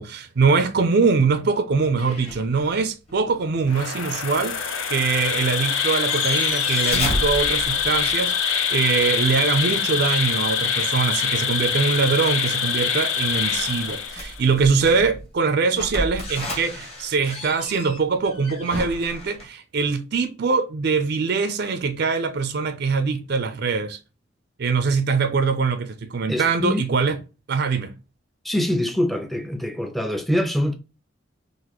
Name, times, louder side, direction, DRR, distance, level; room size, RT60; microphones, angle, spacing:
voice 1, 0.0-24.0 24.6-27.2 27.5-27.9, right 5 dB, 55° right, 0.4 m, -23 dB
sound 1, 2.0-2.7 3.1-3.2 5.3-5.4 5.6-8.1 13.3-15.3 15.7-19.5, left 1 dB, 30° left, 1.1 m, -32 dB
Insect, 3.7-14.5, left 7 dB, 85° left, 0.6 m, -24 dB
voice 2, 26.3-26.8 28.4-30.7, left 1 dB, ahead, 0.4 m, -24 dB
3.9 x 2.5 x 2.9 m
head